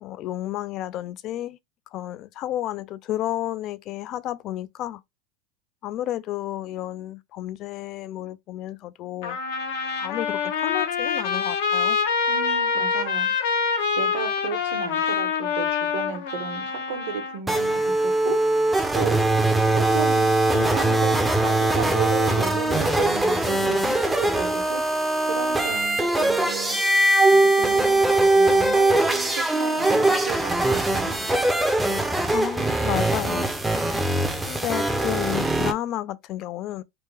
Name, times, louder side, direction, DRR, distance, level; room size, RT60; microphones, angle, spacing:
voice 1, 0.0-1.6 1.9-5.0 5.8-9.4 10.0-12.0 32.3-33.5 34.5-36.8, left 13 dB, 45° left, 0.3 m, -31 dB
Trumpet, 9.2-17.4, left 6 dB, 75° left, 0.9 m, -25 dB
voice 2, 12.3-13.3 14.0-18.4 18.9-19.2 19.7-25.0 25.3-26.8 27.6-31.2 34.1-34.6, right 8 dB, 70° right, 1.0 m, -34 dB
sound 1, 17.5-35.7, right 2 dB, 5° right, 0.6 m, -21 dB
3.3 x 2.1 x 3.3 m
supercardioid pair, 130°, 0 cm